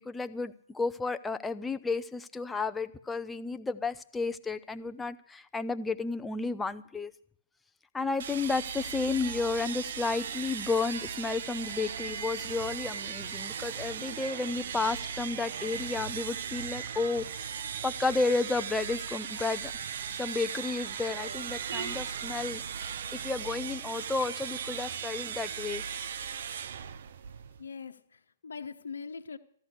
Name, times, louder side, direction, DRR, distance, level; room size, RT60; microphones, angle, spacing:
voice 1, 0.0-7.1 7.9-19.7 20.1-25.8, left 3 dB, 10° left, 0.7 m, -32 dB
sound 1, 8.2-27.7, right 7 dB, 60° right, 0.7 m, -37 dB
voice 2, 27.6-29.4, left 5 dB, 80° left, 1.0 m, -42 dB
14.0 x 12.0 x 6.6 m
hypercardioid pair, 130°, 0 cm